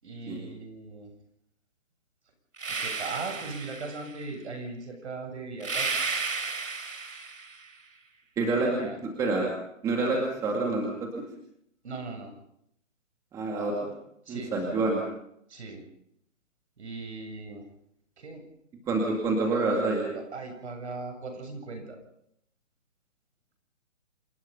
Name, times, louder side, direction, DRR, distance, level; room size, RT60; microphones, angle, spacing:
voice 1, 0.0-1.1 2.7-6.1 8.6-9.0 11.8-12.3 14.2-14.5 15.5-15.8 16.8-17.7 18.2-18.4 20.1-22.0, right 3 dB, 60° right, 5 dB, 7.9 m, -39 dB
sound 1, 2.6-4.2 5.6-7.7, right 4 dB, 85° right, 4.0 m, -33 dB
voice 2, 8.4-9.5 9.8-11.2 13.3-13.9 14.3-15.0 18.9-20.1, right 3 dB, 10° right, 0 dB, 2.2 m, -27 dB
27.5 x 20.0 x 5.5 m, 0.74 s
hypercardioid pair, 170°, 38 cm